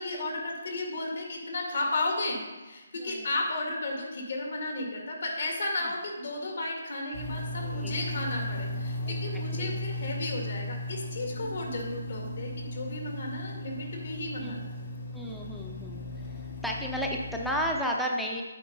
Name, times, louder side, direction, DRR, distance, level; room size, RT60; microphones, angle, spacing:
voice 1, 0.0-2.4 2.7-14.7, left 2 dB, 60° left, 0 dB, 2.1 m, -33 dB
sound 1, 7.1-17.7, left 1 dB, 45° left, 1.9 m, -36 dB
voice 2, 7.6-8.0 9.1-9.2 9.5-9.7 11.4-11.6 14.4-14.6 15.1-16.0 16.6-18.4, equal, ahead, -1 dB, 0.7 m, -33 dB
8.7 x 4.6 x 5.5 m, 1.2 s
figure-of-eight pair, 145°, 0 cm